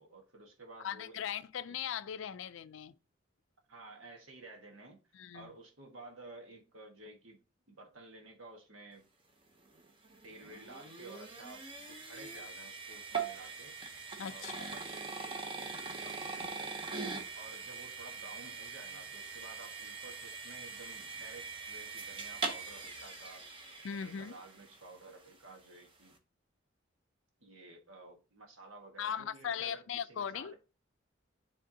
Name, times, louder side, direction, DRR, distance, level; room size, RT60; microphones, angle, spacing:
voice 1, 0.0-1.3 1.7-1.8 3.7-5.0 5.3-7.4 7.7-9.1 10.2-13.7 14.3-16.7 17.4-23.5 24.0-26.2 27.4-30.5, right 2 dB, 85° right, 1.5 m, -53 dB
voice 2, 0.8-2.9 5.1-5.5 14.2-14.7 16.4-16.5 23.8-24.4 29.0-30.5, left 8 dB, 75° left, 0.4 m, -39 dB
sound 1, 9.7-24.9, right 4 dB, 25° right, 0.8 m, -42 dB
10.0 x 3.5 x 2.7 m
head